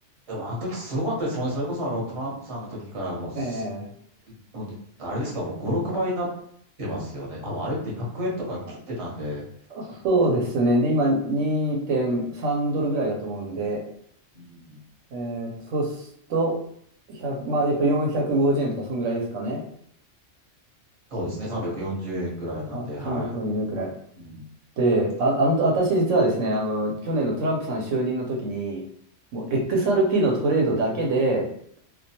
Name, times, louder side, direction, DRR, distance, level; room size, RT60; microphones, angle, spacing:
voice 1, 0.3-3.7 4.5-4.7 5.0-6.3 6.8-9.5 14.3-14.8 21.1-23.4 24.2-24.4 29.5-29.7, equal, 30° right, -4 dB, 0.8 m, -30 dB
voice 2, 3.4-3.8 9.7-13.8 15.1-16.6 17.1-19.6 22.7-23.9 24.8-28.8 29.3-31.5, right 2 dB, 80° right, -1 dB, 1.0 m, -24 dB
2.3 x 2.2 x 2.8 m, 0.65 s
omnidirectional pair, 1.3 m